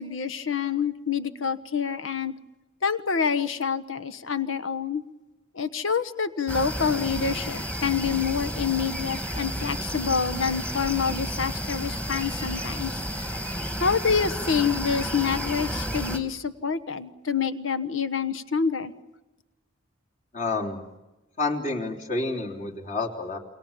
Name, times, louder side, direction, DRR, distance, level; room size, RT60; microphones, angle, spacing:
voice 1, 0.0-2.3 2.8-5.0 5.5-13.0 13.8-18.9, left 6 dB, 90° left, 13 dB, 1.3 m, -27 dB
sound 1, 6.5-16.2, equal, 5° left, 2.0 m, -32 dB
voice 2, 20.3-20.8 21.4-23.4, left 3 dB, 40° left, 1 dB, 3.6 m, -29 dB
29.0 x 23.5 x 7.3 m, 1.0 s
head